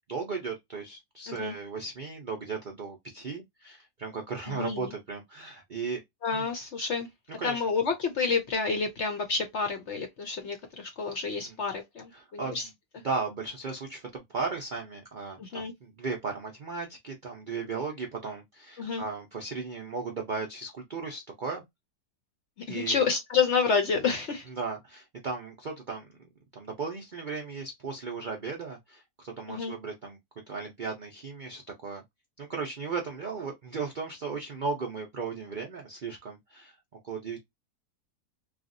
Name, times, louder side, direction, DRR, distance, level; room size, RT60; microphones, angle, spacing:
voice 1, 0.1-6.0 6.3-6.5 7.4-7.6 11.4-11.6 12.1-12.7 13.0-21.6 22.7-23.0 24.5-30.2 30.5-32.0 32.4-36.7 37.0-37.4, right 4 dB, 75° right, 0.4 m, -36 dB
voice 2, 4.5-4.9 6.2-7.1 7.4-12.7 15.4-15.7 18.8-19.0 22.7-24.4 29.5-29.7, left 5 dB, 60° left, 0.7 m, -29 dB
3.3 x 2.4 x 2.5 m
omnidirectional pair, 1.8 m